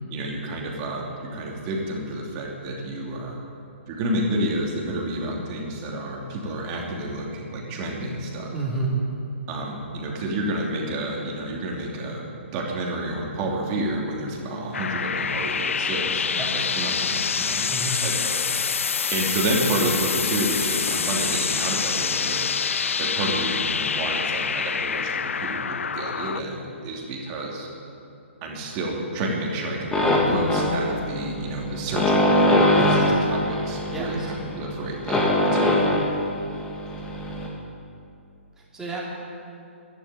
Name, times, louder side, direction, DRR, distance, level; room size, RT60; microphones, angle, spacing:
voice 1, 0.1-3.4 3.9-8.5 9.5-12.2 12.5-16.3 16.5-22.4 23.0-27.7 28.4-36.2, right 1 dB, 30° right, -1 dB, 2.9 m, -30 dB
voice 2, 8.5-9.0 16.3-16.7 17.7-18.0 32.8-33.0 33.9-34.3 38.6-39.0, right 3 dB, 10° right, -6 dB, 3.2 m, -30 dB
sound 1, 14.7-26.4, left 6 dB, 85° left, 0.4 m, -26 dB
sound 2, 29.9-37.5, left 1 dB, 10° left, 2.0 m, -22 dB
12.0 x 10.5 x 9.2 m, 2.6 s
hypercardioid pair, 140°, 7 cm